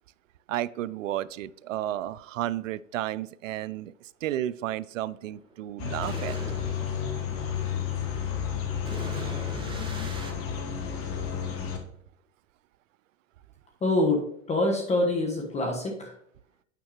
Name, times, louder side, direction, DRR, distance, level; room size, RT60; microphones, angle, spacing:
voice 1, 0.5-6.4, right 13 dB, 75° right, 20 dB, 0.5 m, -32 dB
sound 1, 5.1-10.3, right 2 dB, 10° right, 1.4 m, -42 dB
sound 2, 5.8-11.8, left 8 dB, 35° left, 1.4 m, -31 dB
voice 2, 13.8-16.1, left 2 dB, 15° left, 1 dB, 1.3 m, -26 dB
9.1 x 6.5 x 3.0 m, 0.69 s
hypercardioid pair, 115°, 40 cm